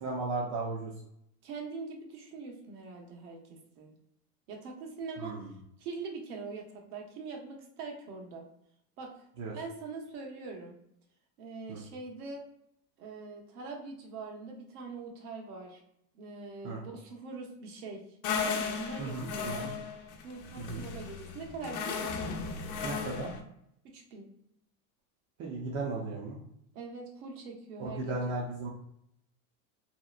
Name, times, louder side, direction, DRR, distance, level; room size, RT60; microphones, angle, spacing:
voice 1, 0.0-0.9 5.2-5.5 9.4-9.6 11.7-11.8 16.6-16.8 19.0-19.7 20.6-20.8 22.8-23.3 25.4-26.4 27.8-28.7, right 3 dB, 35° right, -2 dB, 0.5 m, -35 dB
voice 2, 1.4-4.0 4.5-5.4 5.8-8.4 9.0-9.1 9.5-10.7 11.4-12.5 13.0-15.8 16.1-18.0 18.3-19.7 20.2-22.4 23.8-24.3 26.7-28.1, right 4 dB, 80° right, 1 dB, 0.9 m, -43 dB
sound 1, 18.2-23.4, left 5 dB, 75° left, 0.6 m, -36 dB
2.8 x 2.0 x 2.3 m, 0.76 s
supercardioid pair, 120°, 45 cm